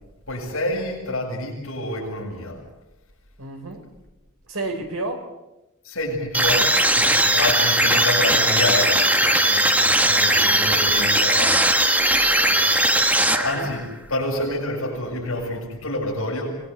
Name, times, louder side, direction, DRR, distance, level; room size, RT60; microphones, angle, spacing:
voice 1, 0.3-2.6 5.8-11.7 12.5-12.8 13.4-16.6, left 1 dB, 65° left, -2 dB, 7.0 m, -28 dB
voice 2, 3.4-3.8 4.5-5.2 12.4-13.7, right 2 dB, 75° right, 6 dB, 4.4 m, -32 dB
sound 1, 6.3-13.9, right 1 dB, 5° right, 1.3 m, -19 dB
25.5 x 20.5 x 8.3 m, 0.96 s
head